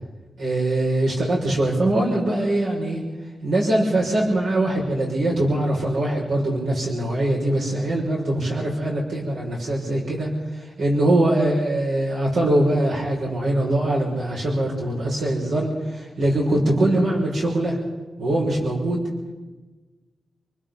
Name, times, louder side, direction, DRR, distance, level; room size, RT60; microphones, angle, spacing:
voice 1, 0.4-3.0 3.4-10.3 10.8-17.8 18.2-19.0, right 1 dB, 85° right, -3 dB, 6.3 m, -22 dB
30.0 x 21.5 x 4.1 m, 1.2 s
wide cardioid pair, 175°, 0 cm